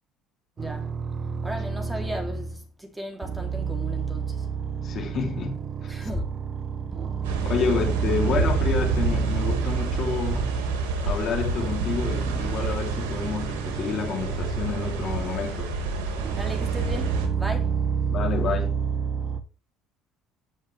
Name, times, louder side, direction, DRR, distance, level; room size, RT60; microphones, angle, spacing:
voice 1, 0.6-0.9 1.4-4.5 5.9-6.3 16.4-17.7, equal, 10° right, 3.4 m, -36 dB
sound 1, 0.6-2.6 3.2-11.1 11.5-15.7 16.2-19.4, right 6 dB, 45° right, 1.2 m, -29 dB
voice 2, 4.8-5.9 7.4-10.6 11.0-15.7 18.1-18.7, left 6 dB, 50° left, 3.4 m, -29 dB
sound 2, 7.2-17.3, right 3 dB, 85° right, 2.5 m, -30 dB
15.5 x 6.4 x 3.5 m
supercardioid pair, 75°, 0 cm